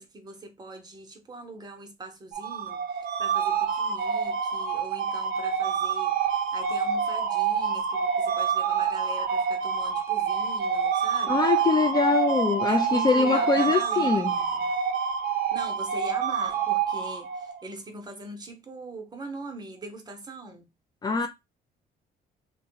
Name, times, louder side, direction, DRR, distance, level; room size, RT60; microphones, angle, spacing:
voice 1, 0.0-6.2 6.5-11.5 12.7-14.7 15.5-20.7, right 2 dB, 25° right, 0.9 m, -42 dB
sound 1, 2.3-17.6, right 6 dB, 60° right, 0.8 m, -27 dB
voice 2, 11.3-14.3 21.0-21.3, left 4 dB, 25° left, 0.4 m, -23 dB
2.8 x 2.2 x 3.8 m
cardioid pair, 110°, 17 cm